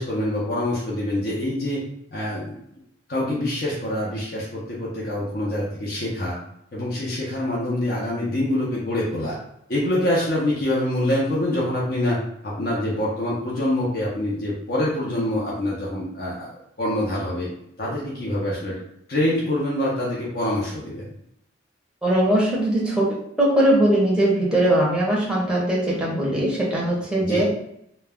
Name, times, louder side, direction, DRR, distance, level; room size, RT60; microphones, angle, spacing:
voice 1, 0.0-1.8 2.1-2.5 3.1-6.4 6.7-9.4 9.7-12.2 12.4-16.5 16.8-17.5 17.8-18.8 19.1-21.1 27.2-27.5, left 1 dB, 50° left, -6 dB, 0.6 m, -25 dB
voice 2, 22.0-27.5, right 1 dB, 5° right, -5 dB, 0.6 m, -20 dB
2.3 x 2.1 x 3.4 m, 0.76 s
head